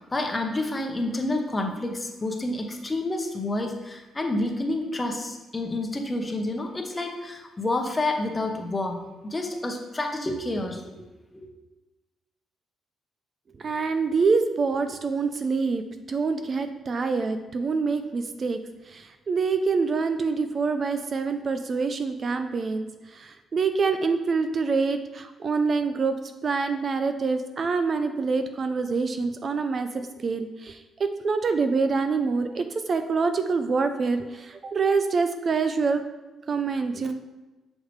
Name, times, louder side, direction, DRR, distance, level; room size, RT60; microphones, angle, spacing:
voice 1, 0.0-10.9 11.3-11.5, left 2 dB, 20° left, 3 dB, 0.9 m, -29 dB
voice 2, 13.6-18.6 18.9-26.2 26.4-36.0 36.5-37.2, right 4 dB, 45° right, 8 dB, 0.4 m, -26 dB
6.4 x 4.8 x 3.2 m, 1.1 s
cardioid pair, 90°, 0 cm